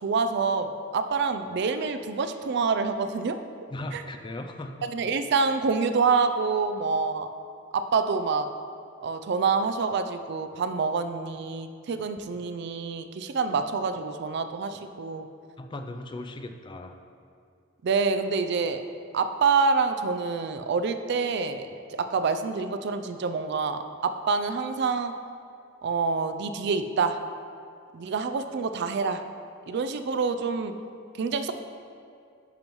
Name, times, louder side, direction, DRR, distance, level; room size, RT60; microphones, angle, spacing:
voice 1, 0.0-3.4 3.9-4.0 4.9-7.3 7.7-8.5 9.0-15.3 17.8-18.8 19.1-25.1 25.8-27.2 27.9-29.2 29.7-30.7 31.2-31.5, right 4 dB, 55° right, 9 dB, 0.4 m, -27 dB
voice 2, 3.7-4.9 15.6-17.0, left 2 dB, 25° left, 7 dB, 0.3 m, -37 dB
10.5 x 5.3 x 3.0 m, 2.5 s
head